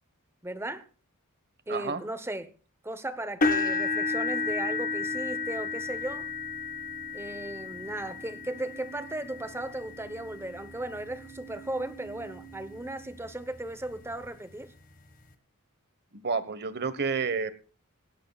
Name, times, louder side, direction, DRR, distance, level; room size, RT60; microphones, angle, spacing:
voice 1, 0.4-0.8 1.7-2.5 2.8-6.3 7.1-14.7, right 1 dB, 10° right, 0.9 m, -36 dB
voice 2, 1.7-2.0 16.1-17.5, right 5 dB, 50° right, 1.3 m, -30 dB
sound 1, 3.4-11.4 12.1-12.3 12.7-12.8 14.2-14.3, left 4 dB, 40° left, 1.6 m, -32 dB
sound 2, 4.1-14.3, right 8 dB, 70° right, 4.5 m, -52 dB
18.0 x 17.0 x 2.4 m
head